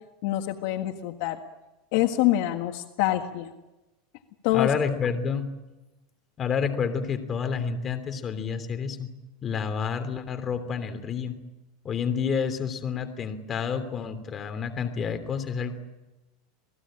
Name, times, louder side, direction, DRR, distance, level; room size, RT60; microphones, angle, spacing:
voice 1, 0.2-1.4 1.9-3.5 4.4-4.7, left 14 dB, 60° left, 6 dB, 1.6 m, -25 dB
voice 2, 4.5-5.5 6.4-9.1 9.4-11.4 11.8-15.7, left 6 dB, 25° left, 8 dB, 3.0 m, -29 dB
28.0 x 19.0 x 8.9 m, 1.0 s
supercardioid pair, 150°, 0 cm